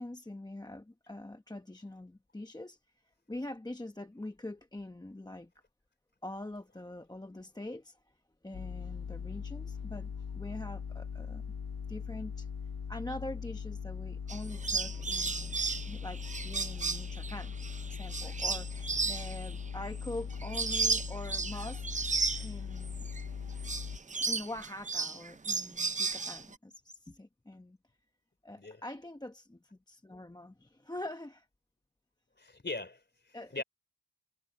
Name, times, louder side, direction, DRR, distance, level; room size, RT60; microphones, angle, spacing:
voice 1, 0.0-5.5 6.2-11.4 11.9-12.5 12.9-15.6 15.9-17.5 17.9-23.1 24.2-27.8 28.4-31.5 33.3-33.6, left 1 dB, 10° left, 0.9 m, -44 dB
sound 1, 8.5-24.0, left 6 dB, 60° left, 1.7 m, -40 dB
sound 2, 14.3-23.2 23.5-26.5, right 4 dB, 20° right, 0.4 m, -34 dB
voice 2, 32.4-33.6, left 3 dB, 25° left, 4.0 m, -41 dB
wide cardioid pair, 120°, 41 cm